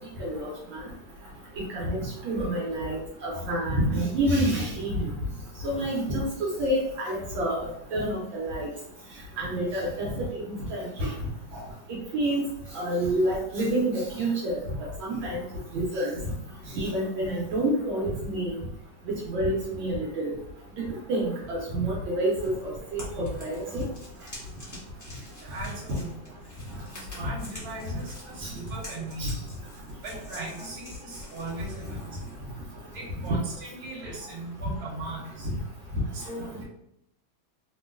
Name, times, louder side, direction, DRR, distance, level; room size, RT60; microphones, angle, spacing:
voice 1, 0.2-0.8 1.7-5.1 5.6-8.7 9.4-11.1 12.1-12.4 12.7-14.6 15.0-15.4 15.7-16.1 16.7-18.6 19.3-20.4 20.8-23.8 28.4-28.5 29.2-29.3, right 1 dB, 75° right, -3 dB, 1.5 m, -28 dB
sound 1, 22.4-33.4, left 1 dB, 30° left, 0.3 m, -47 dB
voice 2, 25.4-26.4 27.0-29.3 30.0-32.0 32.9-35.5 36.1-36.6, right 2 dB, 55° right, -4 dB, 1.4 m, -39 dB
3.4 x 2.2 x 2.2 m, 0.76 s
omnidirectional pair, 2.3 m